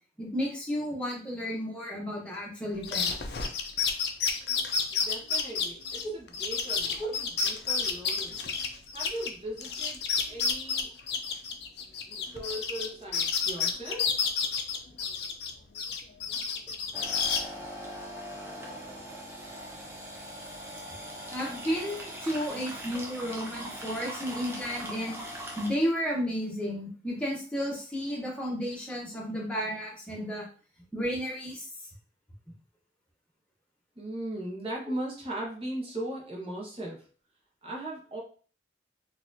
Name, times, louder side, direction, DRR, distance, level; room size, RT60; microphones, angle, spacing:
voice 1, 0.2-3.1 7.0-7.1 21.3-25.2 25.6-30.5 30.9-31.7, equal, 5° left, -4 dB, 1.0 m, -32 dB
sound 1, 2.8-9.3 9.6-12.9 13.1-15.5 15.7-17.4, left 6 dB, 60° left, 0.5 m, -30 dB
voice 2, 4.9-8.4 8.9-10.9 12.0-14.1 34.0-37.0 37.6-38.2, right 1 dB, 30° right, -2 dB, 1.0 m, -38 dB
sound 2, 16.9-25.7, equal, 15° right, 0.6 m, -41 dB
4.2 x 2.5 x 2.6 m, 0.41 s
head